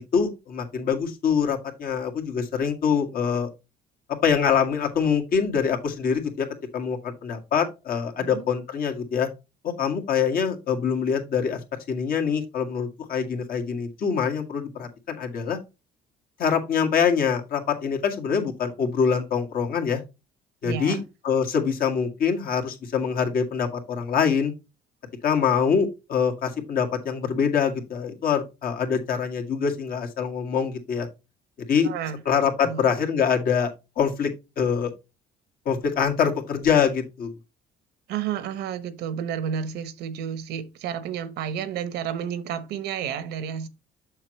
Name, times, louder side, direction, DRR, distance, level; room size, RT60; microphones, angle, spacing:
voice 1, 0.0-3.5 4.1-6.5 6.7-9.3 9.6-11.6 11.9-15.6 16.4-20.0 20.6-24.5 25.2-31.1 31.7-31.9 32.3-34.3 34.6-34.9 35.7-37.3, left 7 dB, 60° left, 2.0 m, -24 dB
voice 2, 8.2-8.5 20.6-21.0 31.8-32.2 32.6-32.9 38.1-43.7, right 8 dB, 80° right, 1.0 m, -31 dB
7.0 x 6.4 x 3.1 m
cardioid pair, 110°, 17 cm